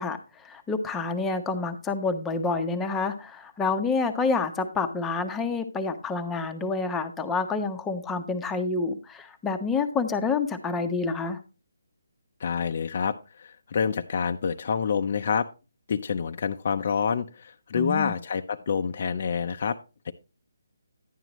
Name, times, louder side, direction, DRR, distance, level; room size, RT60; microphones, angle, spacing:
voice 1, 0.0-11.4 17.7-18.1, left 4 dB, 10° left, 6 dB, 0.9 m, -28 dB
voice 2, 12.4-15.5 15.9-19.8 20.0-20.1, left 6 dB, 45° left, 6 dB, 0.6 m, -27 dB
11.0 x 9.4 x 3.0 m, 0.29 s
hypercardioid pair, 160°, 0 cm